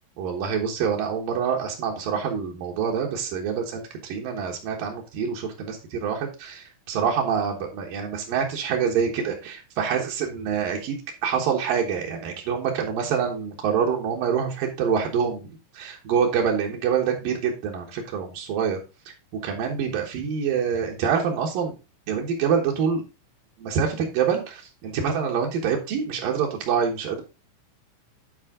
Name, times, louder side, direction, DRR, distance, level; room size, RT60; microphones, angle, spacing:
voice 1, 0.2-18.8 19.1-21.7 22.1-23.0 23.6-27.2, right 7 dB, 80° right, 0 dB, 3.0 m, -26 dB
10.5 x 4.5 x 3.7 m, 0.29 s
omnidirectional pair, 3.9 m